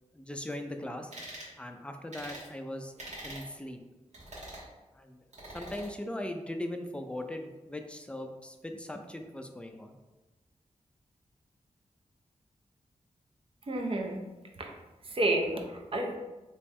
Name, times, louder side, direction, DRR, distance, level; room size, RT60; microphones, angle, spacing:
voice 1, 0.1-1.1 1.6-2.9 3.2-3.8 4.9-5.2 5.5-10.0, left 1 dB, 10° left, 5 dB, 0.4 m, -39 dB
sound 1, 1.1-1.5 2.1-2.5 3.0-3.5 4.1-4.7 5.3-5.9, right 1 dB, 65° right, 1.3 m, -44 dB
voice 2, 13.7-14.2 14.6-14.7 15.0-16.2, right 1 dB, 45° right, 2 dB, 0.6 m, -30 dB
3.3 x 3.0 x 3.2 m, 1.1 s
wide cardioid pair, 85°, 13 cm